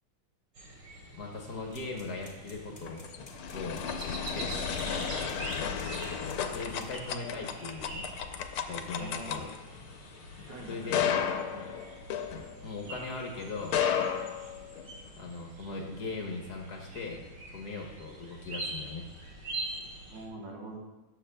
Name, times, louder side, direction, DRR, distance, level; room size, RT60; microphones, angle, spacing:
sound 1, 0.5-20.3, right 2 dB, 85° right, 2.7 m, -44 dB
voice 1, 1.1-3.1 3.5-4.6 6.5-8.1 8.7-9.5 10.7-11.2 12.6-13.8 15.2-17.2 17.5-19.1, left 3 dB, 55° left, 0 dB, 1.4 m, -39 dB
sound 2, 1.7-7.0, left 2 dB, 25° left, 1.8 m, -53 dB
sound 3, 2.6-13.0 13.6-15.1, left 8 dB, 80° left, 1.5 m, -34 dB
voice 2, 9.0-9.5 10.5-12.1 20.1-20.8, right 2 dB, 60° right, -2 dB, 2.0 m, -45 dB
18.5 x 7.0 x 2.2 m, 1.1 s
omnidirectional pair, 2.3 m